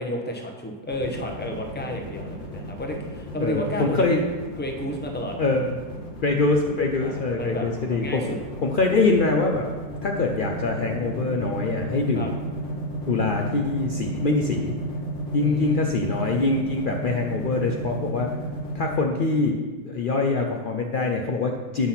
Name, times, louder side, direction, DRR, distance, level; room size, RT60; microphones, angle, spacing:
voice 1, 0.0-4.3 4.6-5.4 7.0-8.4 12.1-12.3 15.4-16.3, equal, 10° left, 2 dB, 0.6 m, -31 dB
sound 1, 0.9-19.0, equal, 45° left, 1.7 m, -34 dB
voice 2, 3.4-4.2 5.4-5.8 6.2-8.3 8.6-9.7 10.0-12.4 13.1-14.7 15.3-18.4 18.7-19.6 19.8-21.9, left 3 dB, 80° left, 2 dB, 0.4 m, -24 dB
8.6 x 5.8 x 5.7 m, 1.3 s
omnidirectional pair, 1.8 m